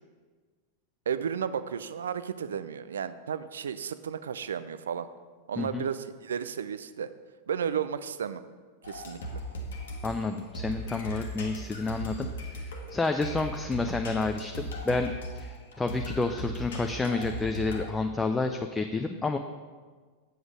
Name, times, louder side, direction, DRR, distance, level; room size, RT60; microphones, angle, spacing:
voice 1, 1.1-5.1 5.5-7.1 7.5-8.4 8.8-9.2, right 8 dB, 65° right, 13 dB, 0.4 m, -33 dB
sound 1, 8.8-17.9, equal, 60° left, 1.3 m, -38 dB
voice 2, 10.0-12.3 12.5-19.4, left 3 dB, 10° left, 5 dB, 0.4 m, -30 dB
7.8 x 7.8 x 5.0 m, 1.5 s
figure-of-eight pair, 90°, 0 cm